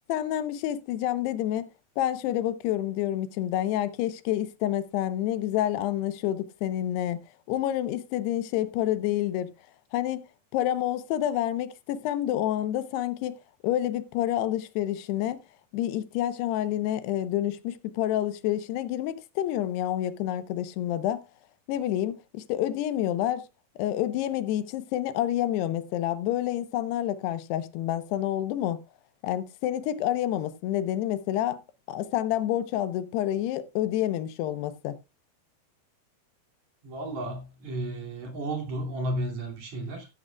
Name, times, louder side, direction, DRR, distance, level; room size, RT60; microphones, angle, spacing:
voice 1, 0.1-1.7 2.0-7.2 7.5-9.5 9.9-10.2 10.5-13.4 13.6-15.4 15.7-21.2 21.7-23.5 23.8-28.8 29.2-31.6 31.9-35.0, left 12 dB, 90° left, 3.0 m, -28 dB
voice 2, 36.8-40.1, right 1 dB, 50° right, 3.5 m, -33 dB
14.5 x 11.5 x 2.3 m
omnidirectional pair, 4.6 m